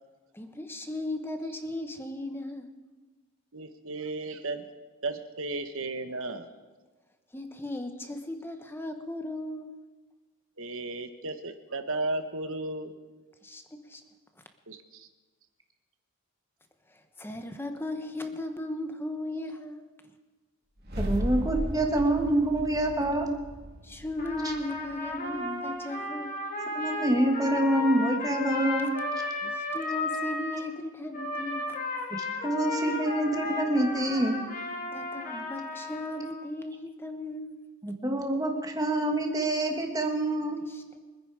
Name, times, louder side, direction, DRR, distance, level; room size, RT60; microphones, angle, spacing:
voice 1, 0.3-2.7 7.3-9.7 13.4-14.0 16.9-19.9 23.8-26.5 29.4-31.7 34.9-37.6 40.7-41.1, left 1 dB, 10° left, 6 dB, 1.1 m, -37 dB
voice 2, 3.5-4.7 5.0-6.5 10.6-12.9 14.7-15.1, right 2 dB, 65° right, 8 dB, 1.3 m, -34 dB
sound 1, 20.8-25.1, equal, 45° right, 2.7 m, -35 dB
voice 3, 21.0-23.3 26.7-28.9 32.4-34.4 37.8-40.6, right 1 dB, 15° right, 3 dB, 1.7 m, -26 dB
Trumpet, 24.2-30.7 31.1-36.5, left 2 dB, 40° left, 2.4 m, -34 dB
24.5 x 10.0 x 4.9 m, 1.3 s
head